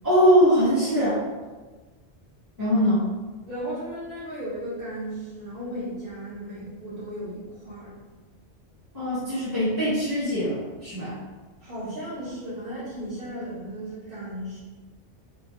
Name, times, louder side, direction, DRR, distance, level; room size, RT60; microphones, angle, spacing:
voice 1, 0.0-1.2 2.6-3.1 8.9-11.2, equal, 15° right, -14 dB, 1.1 m, -22 dB
voice 2, 3.5-7.9 11.6-14.6, right 1 dB, 55° right, -12 dB, 1.1 m, -35 dB
2.8 x 2.0 x 2.9 m, 1.3 s
omnidirectional pair, 1.2 m